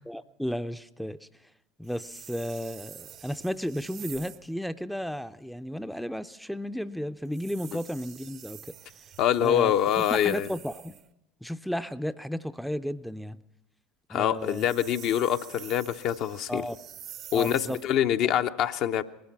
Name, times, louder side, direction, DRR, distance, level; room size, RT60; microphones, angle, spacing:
voice 1, 0.1-1.3 1.8-8.7 9.4-9.7 10.1-10.9 11.4-13.4 14.1-14.7 16.5-16.8 17.3-17.8 18.2-18.3, equal, ahead, 12 dB, 0.5 m, -33 dB
sound 1, 1.8-4.5 7.2-11.1 14.3-18.0, right 10 dB, 50° right, 0.7 m, -47 dB
voice 2, 9.2-10.5 14.1-16.6 17.3-19.0, left 10 dB, 55° left, 8 dB, 0.6 m, -25 dB
19.5 x 12.0 x 5.7 m, 0.92 s
hypercardioid pair, 75°, 0 cm